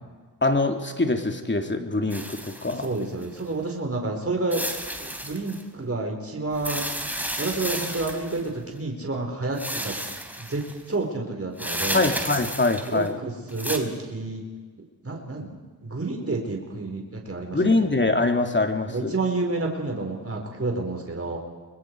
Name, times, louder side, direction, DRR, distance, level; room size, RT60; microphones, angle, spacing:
voice 1, 0.4-2.9 11.9-13.2 17.5-19.1, left 2 dB, 30° left, 5 dB, 3.0 m, -23 dB
sound 1, 2.1-3.4 4.5-5.6 6.5-8.5 9.5-10.8 11.6-13.1 13.5-13.8, right 1 dB, 5° right, 3.8 m, -32 dB
voice 2, 2.8-4.7 5.0-6.9 7.4-10.0 10.4-12.1 12.8-14.4 15.0-17.6 18.9-21.4, right 3 dB, 35° right, 1 dB, 4.8 m, -29 dB
29.5 x 22.5 x 4.9 m, 1.4 s
supercardioid pair, 45°, 39 cm